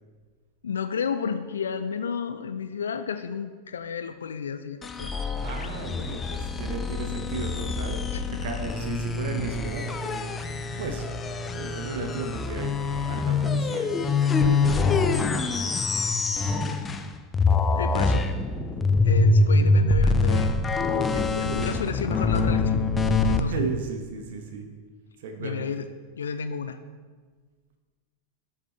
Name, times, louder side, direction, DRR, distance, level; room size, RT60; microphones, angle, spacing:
voice 1, 0.6-5.1 5.6-5.8 8.1-8.4 17.8-18.3 19.0-20.5 21.1-22.8 23.3-23.6 25.4-25.9 26.2-26.8, left 6 dB, 70° left, 9 dB, 0.4 m, -32 dB
sound 1, 4.8-17.1 17.3-23.4, left 3 dB, 15° left, 0.6 m, -25 dB
voice 2, 5.4-15.0 19.5-19.9 21.3-21.8 23.4-24.7 25.2-25.7, right 4 dB, 55° right, 4 dB, 1.0 m, -35 dB
12.5 x 7.2 x 3.3 m, 1.4 s
figure-of-eight pair, 90°, 0 cm